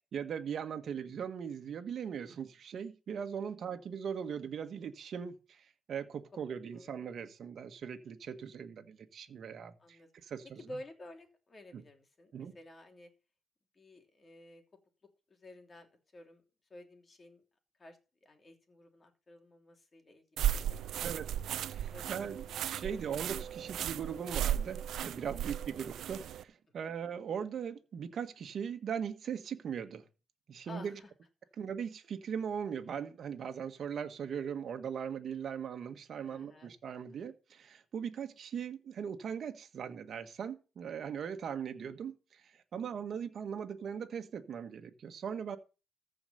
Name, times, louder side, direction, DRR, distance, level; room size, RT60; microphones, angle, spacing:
voice 1, 0.1-10.6 11.7-11.8 12.3-12.5 21.0-21.3 21.7-30.0 30.5-31.0 31.6-45.6, right 7 dB, 60° right, 1.5 m, -40 dB
voice 2, 9.8-10.3 10.6-13.1 13.7-14.6 15.3-15.9 16.1-16.4 16.7-17.4 17.8-21.1 21.9-22.6 25.3-25.5 26.8-26.9 30.6-31.1 36.2-36.7 42.7-43.0, left 1 dB, 35° left, 2.9 m, -52 dB
sound 1, 20.4-26.4, right 11 dB, 75° right, 0.5 m, -36 dB
14.5 x 5.0 x 6.7 m
cardioid pair, 90°, 0 cm